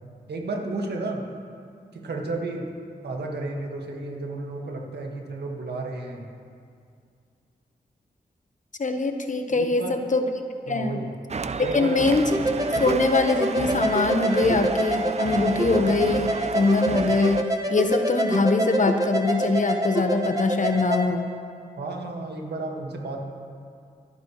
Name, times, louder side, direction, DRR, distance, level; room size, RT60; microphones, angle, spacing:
voice 1, 0.3-1.3 1.9-2.7 3.0-6.3 9.5-10.0 10.7-11.1 11.6-12.0 21.8-23.2, right 2 dB, 85° right, 1 dB, 1.7 m, -32 dB
voice 2, 8.8-10.2 10.7-11.0 11.6-12.2 12.7-17.4 17.7-21.3, left 3 dB, 50° left, 6 dB, 1.1 m, -23 dB
sound 1, 11.3-17.4, right 5 dB, 40° right, 0.5 m, -32 dB
sound 2, 12.3-21.0, right 1 dB, 20° right, 1.5 m, -26 dB
26.0 x 9.5 x 3.1 m, 2.3 s
cardioid pair, 50°, 17 cm